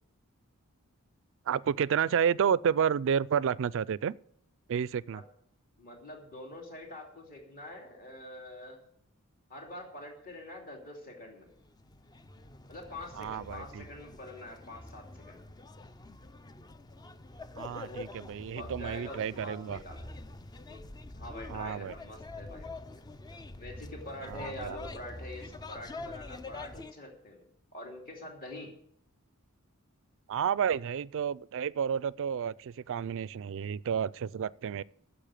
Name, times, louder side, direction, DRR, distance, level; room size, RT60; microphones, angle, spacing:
voice 1, 1.5-4.1 4.7-5.2 13.2-13.9 17.6-19.8 21.5-21.9 24.3-24.8 30.3-34.8, right 7 dB, 60° right, 0.4 m, -30 dB
voice 2, 5.8-8.8 9.5-11.5 12.7-15.5 17.8-18.0 18.5-20.1 20.7-20.8 21.1-23.0 23.6-27.5 27.7-28.7, left 1 dB, 40° left, 2.8 m, -45 dB
sound 1, 11.5-26.9, left 2 dB, 20° left, 0.4 m, -46 dB
10.0 x 7.0 x 9.0 m
head